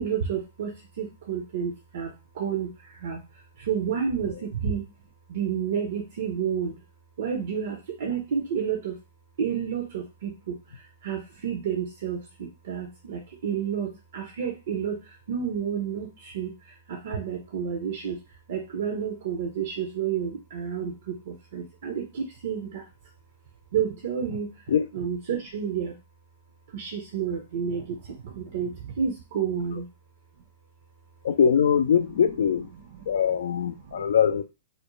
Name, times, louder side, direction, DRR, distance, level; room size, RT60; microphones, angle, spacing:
voice 1, 0.0-3.2 3.6-4.8 5.3-6.7 7.2-9.0 9.4-18.2 18.5-22.9 23.7-24.5 24.9-26.0 26.7-29.9 33.0-33.1 33.8-34.2, right 7 dB, 60° right, 2 dB, 0.5 m, -30 dB
voice 2, 31.2-32.7 33.1-34.4, left 7 dB, 70° left, 10 dB, 0.3 m, -22 dB
2.4 x 2.1 x 3.0 m, 0.28 s
hypercardioid pair, 120°, 0 cm